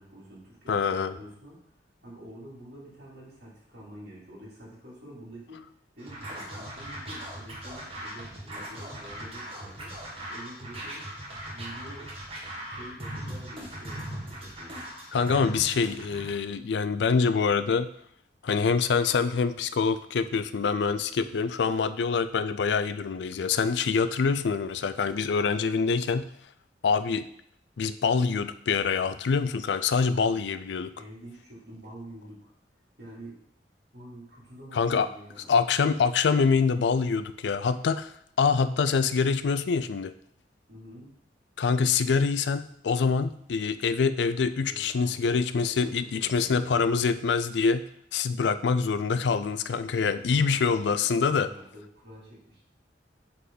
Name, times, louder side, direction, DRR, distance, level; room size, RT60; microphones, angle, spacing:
voice 1, 0.0-1.6 2.0-5.7 6.0-9.9 10.3-11.1 11.5-12.1 12.7-14.8 30.1-30.4 31.0-32.5 33.0-33.4 33.9-35.6 40.7-41.1 44.6-46.9 50.0-52.6, equal, 65° right, -7 dB, 3.0 m, -47 dB
voice 2, 0.7-1.2 15.1-17.9 18.4-26.3 26.8-27.2 27.8-30.9 34.7-35.1 35.5-38.1 38.4-40.1 41.6-47.8 48.1-51.5, left 5 dB, 70° left, 12 dB, 0.4 m, -25 dB
Scratching (performance technique), 6.0-16.3, right 1 dB, 35° right, 1.6 m, -39 dB
8.2 x 4.0 x 3.9 m, 0.69 s
head